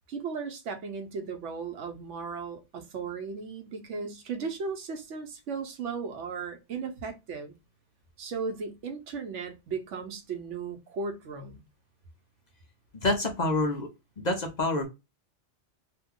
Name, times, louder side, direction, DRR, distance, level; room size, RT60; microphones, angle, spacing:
voice 1, 0.1-7.5 8.2-11.6, right 5 dB, 85° right, 1.1 m, -36 dB
voice 2, 12.9-13.9 14.2-14.9, left 2 dB, 45° left, 0.7 m, -27 dB
2.9 x 2.2 x 3.5 m
omnidirectional pair, 1.2 m